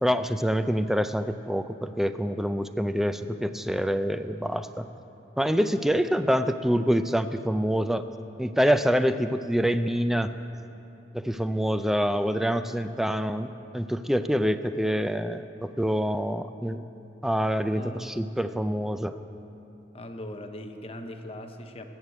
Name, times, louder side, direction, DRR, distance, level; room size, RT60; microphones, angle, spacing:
voice 1, 0.0-4.9 5.4-8.0 8.4-10.3 11.1-16.8 17.2-19.2, equal, ahead, 10 dB, 0.3 m, -26 dB
voice 2, 17.7-18.1 19.9-21.9, left 1 dB, 35° left, 5 dB, 0.8 m, -39 dB
14.0 x 6.4 x 8.1 m, 2.8 s
head